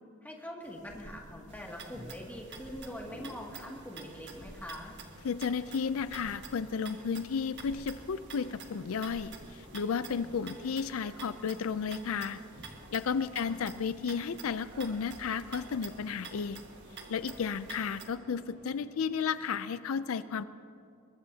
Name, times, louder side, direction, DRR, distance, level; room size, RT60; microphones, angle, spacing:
voice 1, 0.2-5.0 13.3-13.7, equal, 10° left, -2 dB, 2.2 m, -43 dB
sound 1, 0.6-10.4, equal, 35° left, 1.5 m, -55 dB
sound 2, 1.5-18.1, right 4 dB, 50° right, 1.7 m, -49 dB
sound 3, 2.7-19.8, right 1 dB, 75° right, 3.3 m, -58 dB
voice 2, 5.2-12.4 12.9-16.6 17.1-20.4, left 6 dB, 75° left, 13 dB, 0.4 m, -33 dB
23.0 x 21.5 x 2.8 m, 2.7 s
head